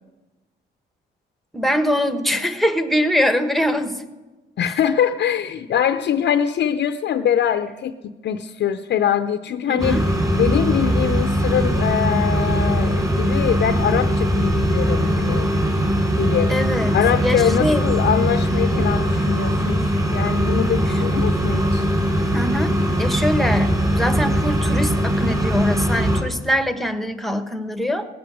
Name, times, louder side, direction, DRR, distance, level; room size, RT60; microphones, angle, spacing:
voice 1, 1.5-4.0 9.7-10.0 16.5-17.9 22.3-28.0, equal, ahead, 8 dB, 1.1 m, -23 dB
voice 2, 4.6-10.0 10.3-15.5 16.2-16.5 16.9-21.9, left 9 dB, 60° left, 10 dB, 0.6 m, -23 dB
sound 1, 9.8-26.2, equal, 20° right, 3.5 m, -20 dB
17.5 x 7.8 x 6.3 m, 1.1 s
cardioid pair, 90°, 20 cm